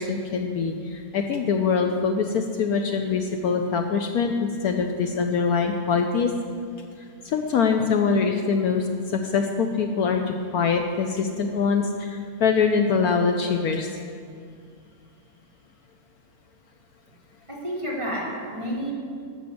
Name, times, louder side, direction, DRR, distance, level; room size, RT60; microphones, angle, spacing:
voice 1, 0.0-6.3 7.2-13.9, left 5 dB, 70° left, 4 dB, 1.1 m, -24 dB
voice 2, 17.5-18.9, equal, 15° right, -5 dB, 2.5 m, -30 dB
12.0 x 6.8 x 7.7 m, 2.2 s
omnidirectional pair, 1.8 m